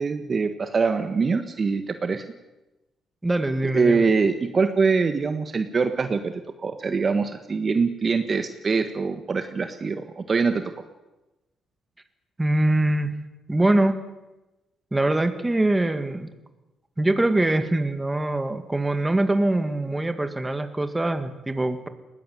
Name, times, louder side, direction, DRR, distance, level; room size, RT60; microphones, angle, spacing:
voice 1, 0.0-2.2 3.6-6.3 6.6-10.6, right 4 dB, 40° right, 8 dB, 1.4 m, -23 dB
voice 2, 3.2-4.1 12.4-13.2 13.5-14.0 14.9-16.3 17.0-21.9, right 1 dB, 15° right, 9 dB, 2.1 m, -23 dB
20.5 x 17.0 x 9.3 m, 1.0 s
cardioid pair, 90°, 0 cm